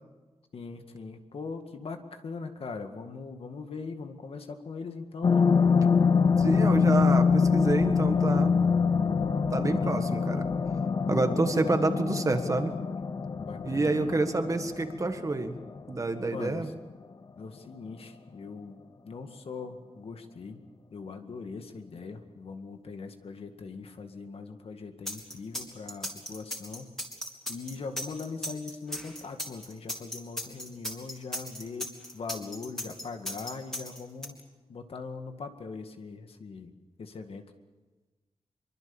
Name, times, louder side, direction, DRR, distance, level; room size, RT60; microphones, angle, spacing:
voice 1, 0.5-5.5 11.2-11.8 13.4-14.3 16.3-16.7 17.4-18.8 19.1-20.6 20.9-27.0 27.5-34.4 34.7-36.7 37.0-37.5, left 4 dB, 65° left, 6 dB, 2.0 m, -41 dB
sound 1, 5.2-16.0 16.5-16.6, left 5 dB, 40° left, 0.8 m, -25 dB
voice 2, 6.4-8.5 9.5-10.5 11.1-12.7 13.6-15.5 15.9-16.7, right 3 dB, 30° right, 7 dB, 1.7 m, -28 dB
sound 2, 25.1-34.3, equal, 5° left, 3.7 m, -36 dB
25.0 x 23.5 x 7.2 m, 1.2 s
wide cardioid pair, 165°, 11 cm